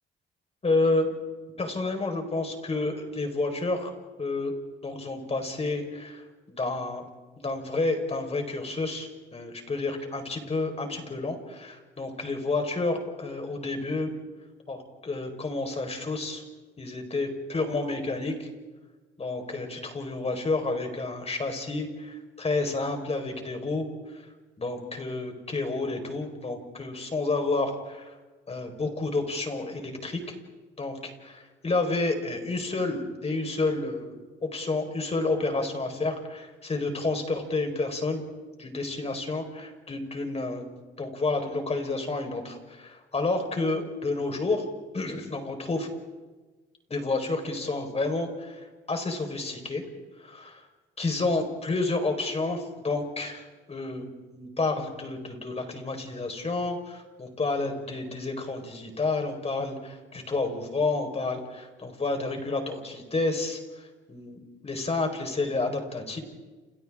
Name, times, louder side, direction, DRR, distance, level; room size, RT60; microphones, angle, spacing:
voice 1, 0.6-1.1 1.6-3.9 4.2-4.5 4.8-7.0 7.4-14.1 14.7-16.4 16.8-18.5 19.2-24.2 24.6-28.1 28.5-30.2 30.8-38.2 38.6-40.7 41.0-44.7 44.9-45.9 46.9-49.8 50.2-50.6 51.0-54.0 54.3-66.2, left 3 dB, 30° left, 4 dB, 4.8 m, -30 dB
30.0 x 29.5 x 3.8 m, 1.3 s
cardioid pair, 90°, 20 cm